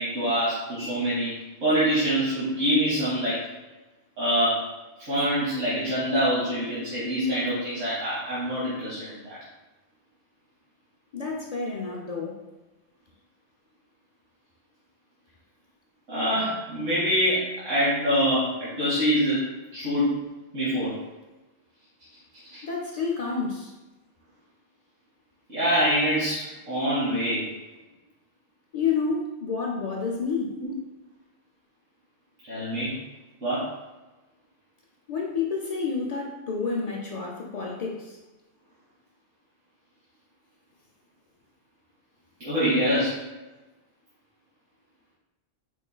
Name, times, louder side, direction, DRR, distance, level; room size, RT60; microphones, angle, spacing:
voice 1, 0.0-1.3 1.6-3.4 4.2-4.7 5.0-9.4 16.1-19.5 19.7-20.2 20.5-21.0 22.5-22.6 25.5-27.5 30.6-30.7 32.4-33.0 33.4-33.7 42.4-43.2, equal, 85° right, -11 dB, 1.6 m, -25 dB
voice 2, 11.1-12.4 22.6-23.7 28.7-30.5 35.1-38.2, left 5 dB, 65° left, -2 dB, 0.3 m, -29 dB
4.6 x 3.1 x 2.2 m, 1.1 s
omnidirectional pair, 1.3 m